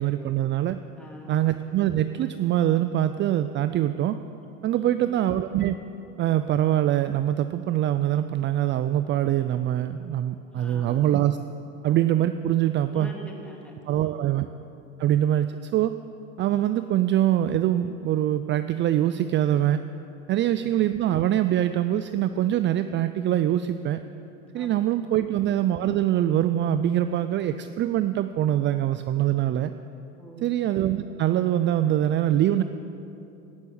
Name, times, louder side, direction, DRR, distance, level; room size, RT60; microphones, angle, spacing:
voice 1, 0.0-0.8 1.3-4.2 4.6-5.7 6.2-11.4 11.8-13.1 13.9-14.5 15.0-15.9 16.4-19.8 20.3-24.0 24.5-29.7 30.4-32.6, right 12 dB, 35° right, 11 dB, 0.5 m, -24 dB
voice 2, 1.0-1.4 4.7-5.2 10.5-11.1 12.9-14.3 24.5-24.8 25.3-25.4 30.2-30.5, equal, 5° left, -1 dB, 2.8 m, -44 dB
18.0 x 6.2 x 8.8 m, 2.9 s
supercardioid pair, 105°, 31 cm